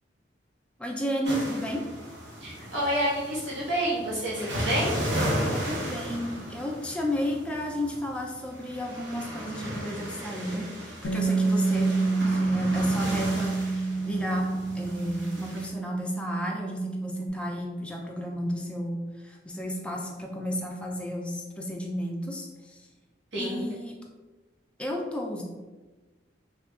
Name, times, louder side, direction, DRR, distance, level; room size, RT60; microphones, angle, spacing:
voice 1, 0.8-1.8 5.5-11.9 12.2-22.9 23.4-24.0 24.8-25.4, equal, 5° left, -1 dB, 0.3 m, -33 dB
sound 1, 1.3-15.7, equal, 65° right, 0.8 m, -35 dB
voice 2, 2.4-5.0 11.8-12.4 23.3-23.6, right 1 dB, 85° right, -8 dB, 1.2 m, -29 dB
Bass guitar, 11.0-17.3, right 3 dB, 80° left, 0.4 m, -28 dB
3.4 x 2.2 x 2.3 m, 1.2 s
head